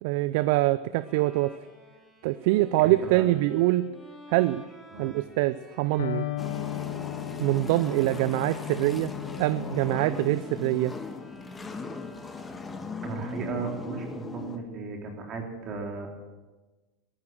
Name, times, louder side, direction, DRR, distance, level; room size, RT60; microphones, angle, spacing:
voice 1, 0.0-1.6 2.2-3.8 4.3-4.6 5.0-6.3 7.4-9.1 9.4-10.9, right 17 dB, 65° right, 16 dB, 0.4 m, -24 dB
Bowed string instrument, 1.0-12.9, left 1 dB, ahead, 3.9 m, -49 dB
voice 2, 2.8-3.3 4.9-5.1 13.0-16.1, right 4 dB, 40° right, 1 dB, 3.4 m, -35 dB
Electric guitar, 6.0-13.8, left 15 dB, 85° left, 0.7 m, -38 dB
sound 1, 6.4-14.6, left 3 dB, 15° left, 1.6 m, -38 dB
14.0 x 13.5 x 7.6 m, 1.2 s
hypercardioid pair, 95°, 0 cm